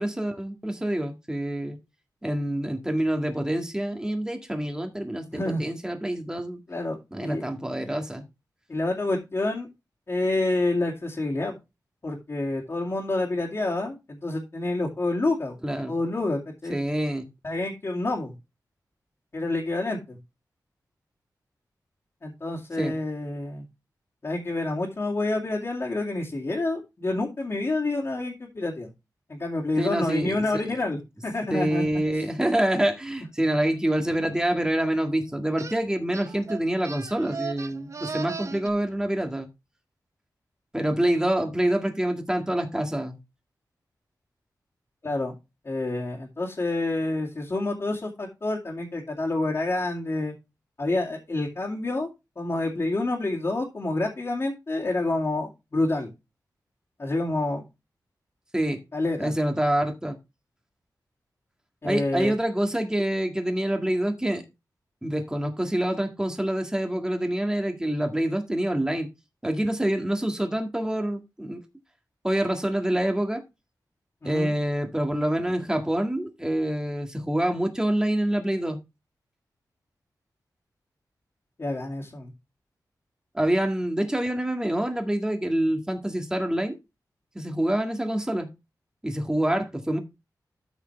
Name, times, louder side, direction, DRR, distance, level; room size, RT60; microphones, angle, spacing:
voice 1, 0.0-1.8 2.2-6.6 7.1-8.2 15.6-16.0 16.7-17.3 22.8-22.9 29.8-30.4 31.5-39.5 40.7-43.2 58.5-58.8 59.2-60.2 61.8-64.4 65.0-69.1 69.4-71.6 72.2-73.4 74.2-78.8 83.3-86.7 87.4-88.5 89.0-90.0, right 1 dB, 10° right, 1.8 m, -26 dB
voice 2, 5.3-5.6 6.7-7.4 8.7-9.7 10.1-11.6 12.0-15.6 15.9-16.8 17.4-18.3 19.3-20.2 22.2-23.6 24.2-28.9 29.3-31.8 45.0-45.3 45.6-50.3 50.8-52.1 52.4-56.1 57.0-57.6 58.9-59.3 61.8-62.3 74.2-74.5 81.6-82.3, left 2 dB, 40° left, 2.5 m, -28 dB
sound 1, 35.6-35.8 36.1-38.7, right 5 dB, 45° right, 0.8 m, -36 dB
13.0 x 4.9 x 3.3 m
wide cardioid pair, 105°, 7 cm